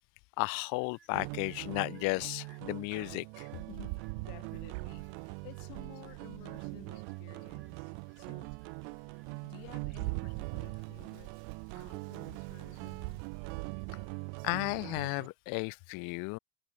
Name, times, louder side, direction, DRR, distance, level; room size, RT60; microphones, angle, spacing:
voice 1, 0.4-3.5 14.4-16.4, left 31 dB, 45° left, 0.4 m, -34 dB
sound 1, 0.7-15.0, right 8 dB, 25° right, 7.3 m, -71 dB
sound 2, 1.1-15.3, right 40 dB or more, 60° right, 0.9 m, -43 dB
voice 2, 3.5-8.6 9.4-11.3 11.7-13.3, left 33 dB, 65° left, 3.6 m, -53 dB
Rain, 3.5-7.1 7.6-7.7 8.2-14.8, right 31 dB, 80° right, 0.6 m, -44 dB
cardioid pair, 155°, 49 cm